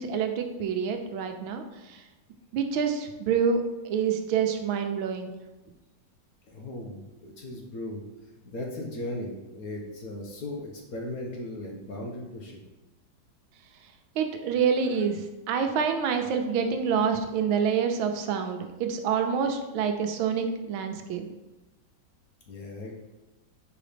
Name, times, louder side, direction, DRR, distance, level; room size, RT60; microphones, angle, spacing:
voice 1, 0.0-2.0 2.5-5.3 14.2-21.3, right 6 dB, 90° right, 6 dB, 1.6 m, -27 dB
voice 2, 6.5-8.0 8.4-12.6 22.5-23.0, left 1 dB, 55° left, 0 dB, 1.2 m, -37 dB
5.1 x 4.8 x 5.0 m, 1.1 s
omnidirectional pair, 2.2 m